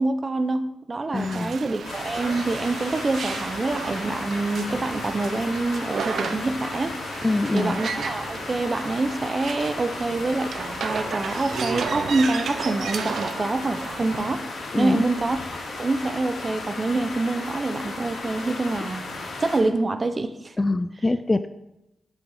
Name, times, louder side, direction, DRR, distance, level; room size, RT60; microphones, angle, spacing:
voice 1, 0.0-7.0 7.5-15.4 15.8-19.1 19.4-20.5, right 2 dB, 25° right, 0.6 m, -26 dB
voice 2, 1.1-1.5 7.2-7.8 14.7-15.0 20.6-21.5, left 2 dB, 15° left, 0.3 m, -24 dB
sound 1, 1.2-14.4, right 5 dB, 70° right, 0.8 m, -34 dB
sound 2, 1.8-19.6, left 2 dB, 90° left, 3.0 m, -35 dB
8.6 x 6.1 x 6.5 m
wide cardioid pair, 165°, 0 cm